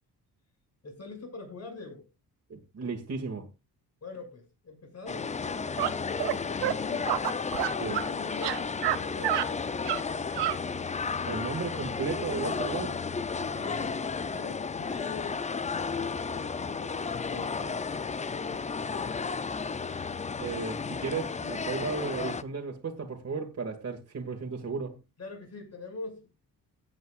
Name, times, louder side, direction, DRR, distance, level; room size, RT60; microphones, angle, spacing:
voice 1, 0.8-2.1 4.0-7.2 7.7-9.7 13.3-14.0 14.3-15.4 15.7-17.9 18.2-19.2 25.2-26.3, left 4 dB, 40° left, 6.3 m, -44 dB
voice 2, 2.5-3.5 7.8-8.0 11.3-13.0 20.4-25.0, right 5 dB, 40° right, 2.0 m, -34 dB
sound 1, 5.1-22.4, left 5 dB, 20° left, 0.4 m, -33 dB
sound 2, 5.8-5.9 6.2-6.4 6.6-6.8 7.1-8.1 8.3-9.0 9.2-9.5 9.9-10.0 10.3-10.6, right 14 dB, 90° right, 0.8 m, -28 dB
17.5 x 8.2 x 2.4 m
cardioid pair, 120°, 40 cm